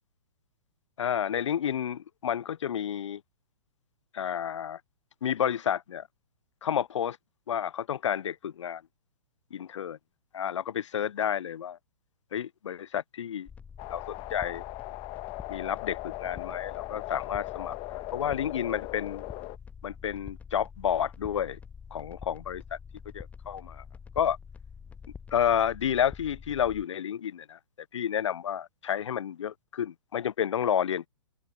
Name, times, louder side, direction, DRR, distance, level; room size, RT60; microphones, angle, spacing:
voice 1, 1.0-3.2 4.1-4.8 5.2-6.0 6.6-7.2 7.5-8.8 9.5-10.0 10.3-11.8 12.3-13.5 13.9-14.6 15.5-19.2 19.8-21.6 21.9-22.6 23.1-23.8 24.2-24.4 25.3-27.6 27.9-31.1, left 9 dB, 65° left, 0.6 m, -30 dB
sound 1, 13.5-26.9, left 6 dB, 10° left, 0.4 m, -46 dB
sound 2, 13.8-19.6, left 25 dB, 30° left, 1.5 m, -39 dB
open air
figure-of-eight pair, 120°, 16 cm